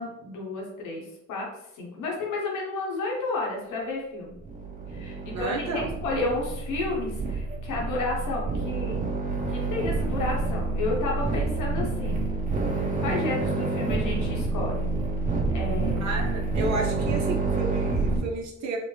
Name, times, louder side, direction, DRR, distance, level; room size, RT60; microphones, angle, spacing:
voice 1, 0.0-1.5 1.7-4.4 4.9-9.0 9.5-12.2 12.7-14.9 15.5-16.1, left 2 dB, 85° left, -2 dB, 1.2 m, -31 dB
sound 1, 4.3-18.2, right 3 dB, 25° right, 1.0 m, -28 dB
voice 2, 5.3-5.9 16.0-18.8, right 3 dB, 65° right, 1 dB, 0.6 m, -32 dB
4.2 x 2.1 x 3.2 m, 0.84 s
cardioid pair, 90°, 30 cm